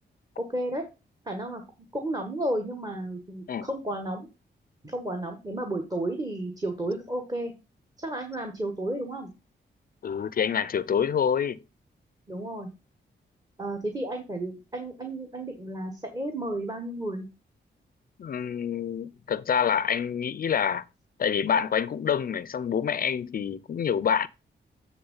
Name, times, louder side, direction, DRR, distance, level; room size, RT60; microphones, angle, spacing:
voice 1, 0.4-0.8 1.2-1.6 1.9-4.3 4.8-7.5 8.0-9.3 12.3-12.7 13.6-17.3, right 1 dB, 20° right, 1.4 m, -32 dB
voice 2, 10.0-11.6 18.2-20.8 21.2-24.3, left 7 dB, 50° left, 0.4 m, -27 dB
8.7 x 3.6 x 5.5 m
cardioid pair, 85°, 19 cm